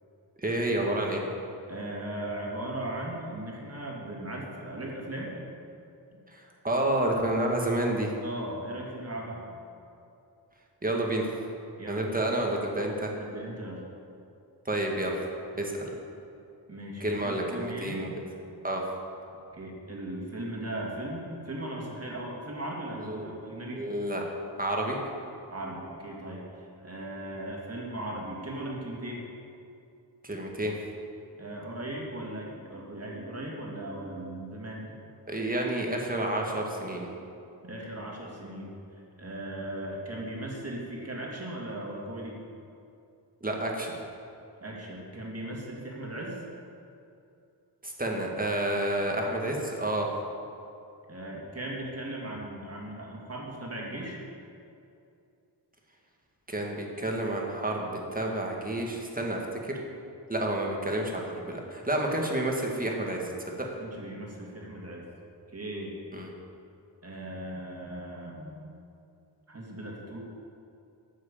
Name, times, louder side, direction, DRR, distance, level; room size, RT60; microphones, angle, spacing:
voice 1, 0.4-1.2 6.3-8.1 10.8-11.3 11.9-13.1 14.7-15.3 15.6-15.9 17.0-18.1 18.6-18.8 23.1-23.3 23.8-24.2 24.6-25.0 30.2-30.7 35.3-37.1 43.4-44.0 47.8-50.1 56.5-59.7 60.3-63.3 63.6-63.7 66.1-66.3, right 1 dB, 20° right, 0 dB, 1.9 m, -29 dB
voice 2, 1.7-5.3 8.2-9.5 11.8-12.0 13.2-13.8 16.7-18.1 19.5-23.9 25.5-29.3 31.4-34.9 37.6-38.7 39.2-42.4 44.6-46.4 51.1-54.2 63.8-65.1 65.5-66.0 67.0-68.6 69.5-70.2, right 1 dB, 35° right, -2 dB, 2.7 m, -38 dB
12.5 x 6.4 x 8.5 m, 2.6 s
wide cardioid pair, 115°, 42 cm